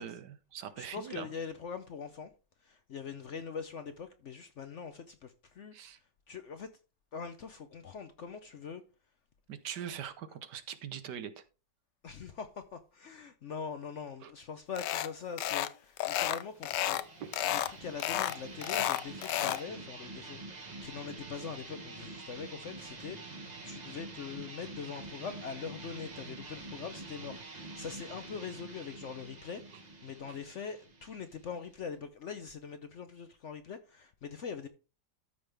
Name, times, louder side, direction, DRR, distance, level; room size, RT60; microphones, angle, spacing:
voice 1, 0.0-1.3 5.7-6.0 9.5-11.4 14.2-14.3 17.2-17.5, right 9 dB, 75° right, 1.5 m, -42 dB
voice 2, 0.8-2.3 2.6-5.7 6.3-6.7 7.1-8.8 12.0-17.0 17.4-34.7, left 6 dB, 60° left, 0.8 m, -43 dB
sound 1, 14.8-15.1 15.4-15.7 16.0-17.1 17.3-17.7 18.0-19.6, left 12 dB, 80° left, 1.3 m, -31 dB
sound 2, 16.5-31.9, right 3 dB, 25° right, 1.3 m, -47 dB
13.5 x 5.5 x 3.4 m
omnidirectional pair, 1.9 m